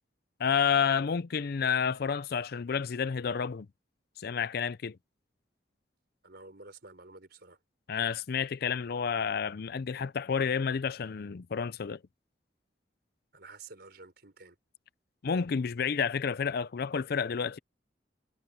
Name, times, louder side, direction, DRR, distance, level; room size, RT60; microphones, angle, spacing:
voice 1, 0.4-3.7 4.2-5.0 7.9-12.0 15.2-17.6, left 6 dB, 55° left, 0.5 m, -30 dB
voice 2, 6.2-7.6 13.3-14.6, right 3 dB, 60° right, 5.0 m, -50 dB
head